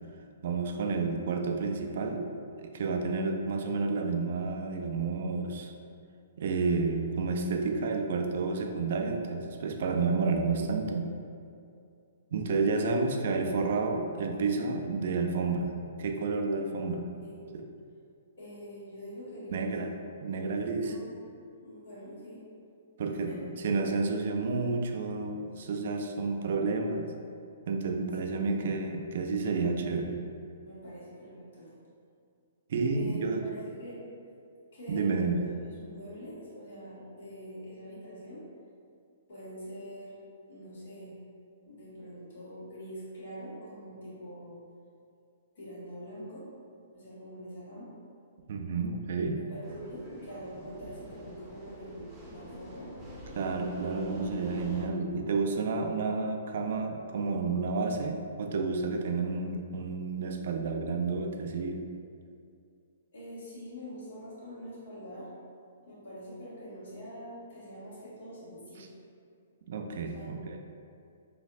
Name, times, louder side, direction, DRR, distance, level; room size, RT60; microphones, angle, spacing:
voice 1, 0.4-2.3 2.6-5.7 6.4-11.1 12.3-15.7 16.0-17.1 17.5-17.6 19.5-19.9 20.2-20.9 23.0-23.3 23.6-27.1 27.7-30.2 32.7-33.4 34.9-35.4 48.5-49.4 53.3-61.8 69.7-70.6, right 4 dB, 60° right, 4 dB, 0.3 m, -30 dB
voice 2, 17.2-17.5 18.4-19.7 20.8-21.1 21.6-22.4 23.3-23.4 28.2-28.6 30.6-31.7 32.9-34.0 34.7-35.4 35.8-38.4 39.3-40.2 40.5-41.2 41.6-44.6 45.5-46.5 46.9-47.9 49.4-52.9 63.1-65.3 65.9-68.9 70.1-70.7, equal, 65° left, -9 dB, 1.4 m, -44 dB
sound 1, 49.6-54.9, equal, 10° right, 0.8 m, -44 dB
4.1 x 2.4 x 2.4 m, 2.4 s
hypercardioid pair, 125°, 0 cm